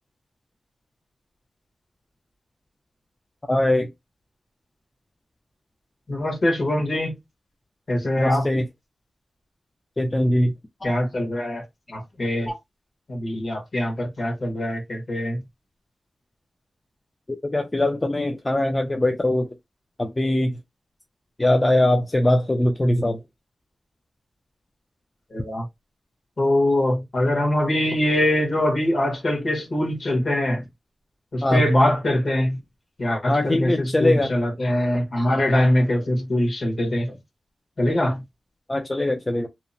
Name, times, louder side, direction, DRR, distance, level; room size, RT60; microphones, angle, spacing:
voice 1, 3.5-3.9 8.2-8.7 10.0-10.5 10.8-10.9 12.5-12.6 17.4-19.5 20.0-20.6 21.4-23.2 31.4-31.7 33.3-34.3 35.2-35.3 38.7-39.5, left 1 dB, 20° left, 0.3 m, -21 dB
voice 2, 6.1-7.1 7.9-8.5 10.8-11.6 11.9-12.5 13.1-15.4 25.3-25.6 26.4-30.6 31.3-32.6 33.0-37.1 37.8-38.2, left 1 dB, 50° left, 1.1 m, -23 dB
2.8 x 2.0 x 2.5 m
wide cardioid pair, 120°, 0 cm